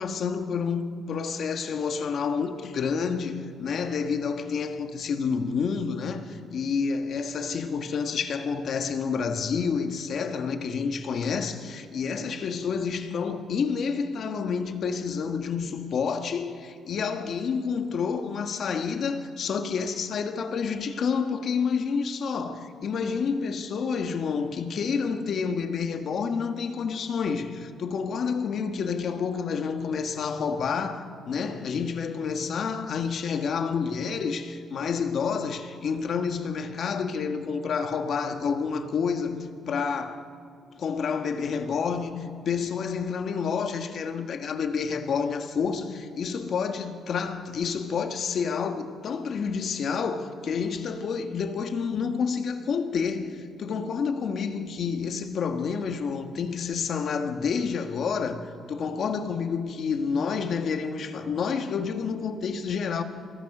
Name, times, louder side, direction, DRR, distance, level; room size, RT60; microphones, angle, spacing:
voice 1, 0.0-40.2 40.8-63.0, left 5 dB, 60° left, 1.6 m, -29 dB
23.5 x 18.5 x 6.2 m
cardioid pair, 90°, 0 cm